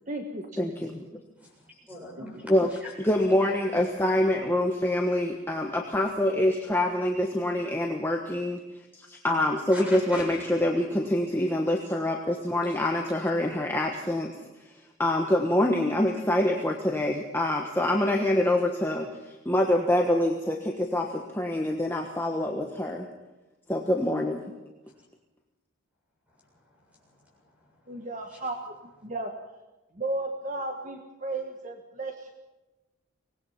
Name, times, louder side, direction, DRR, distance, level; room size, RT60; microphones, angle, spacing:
voice 1, 0.1-0.8 2.2-2.3 27.9-28.5 29.0-29.3 30.0-32.3, right 2 dB, 35° right, 4 dB, 1.5 m, -34 dB
voice 2, 0.6-0.9 2.5-2.7 3.0-8.6 9.1-14.3 15.0-19.1 19.4-23.1 23.7-24.4, left 1 dB, 10° left, 1 dB, 1.3 m, -25 dB
voice 3, 1.9-2.9 9.7-10.4 12.6-12.8 24.8-25.0 26.3-28.0 28.3-28.4, left 1 dB, 5° right, -1 dB, 7.4 m, -44 dB
24.5 x 19.0 x 5.7 m, 1.1 s
head